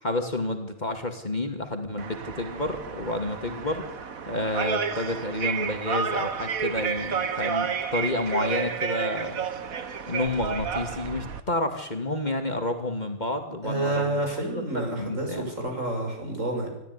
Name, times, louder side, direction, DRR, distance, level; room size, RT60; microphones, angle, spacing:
voice 1, 0.0-9.5 10.1-14.3 14.5-15.5, left 2 dB, 30° left, 5 dB, 2.6 m, -30 dB
sound 1, 2.0-11.4, right 6 dB, 80° right, 1.9 m, -31 dB
voice 2, 13.6-16.7, right 2 dB, 65° right, 3 dB, 6.7 m, -29 dB
27.0 x 14.0 x 9.8 m, 0.92 s
omnidirectional pair, 1.4 m